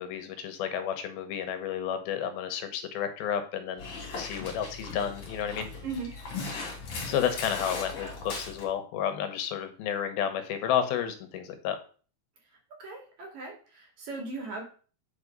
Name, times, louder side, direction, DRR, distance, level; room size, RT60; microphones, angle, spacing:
voice 1, 0.0-5.7 7.1-11.8, left 9 dB, 80° left, 8 dB, 2.8 m, -31 dB
Dog, 3.8-8.7, left 3 dB, 40° left, 3.0 m, -38 dB
voice 2, 12.8-14.6, right 3 dB, 55° right, 1 dB, 3.2 m, -38 dB
8.8 x 4.7 x 5.3 m, 0.39 s
omnidirectional pair, 4.4 m